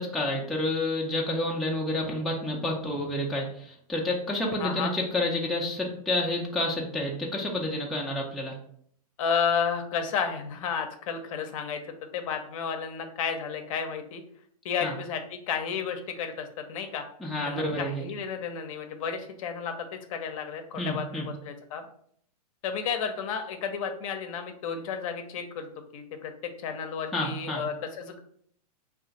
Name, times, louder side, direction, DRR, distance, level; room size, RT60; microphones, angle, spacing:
voice 1, 0.0-8.6 14.8-14.9 17.2-18.0 20.8-21.3 27.1-27.6, left 1 dB, ahead, -2 dB, 0.3 m, -29 dB
voice 2, 4.6-4.9 9.2-11.8 12.1-14.2 14.6-17.0 17.4-21.9 22.6-25.7 25.9-26.3 26.6-28.2, left 6 dB, 55° left, 6 dB, 0.5 m, -32 dB
2.4 x 2.3 x 3.9 m, 0.64 s
hypercardioid pair, 130°, 20 cm